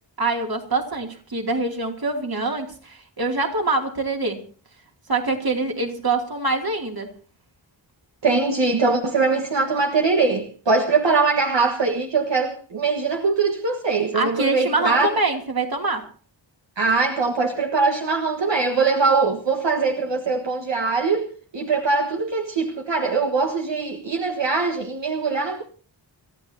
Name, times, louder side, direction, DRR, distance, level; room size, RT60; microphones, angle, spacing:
voice 1, 0.2-4.4 5.1-7.1 14.1-16.1, right 3 dB, 50° right, 2.9 m, -24 dB
voice 2, 8.2-15.1 16.8-25.6, right 4 dB, 65° right, 1.6 m, -22 dB
29.0 x 14.5 x 2.8 m
wide cardioid pair, 100°, 47 cm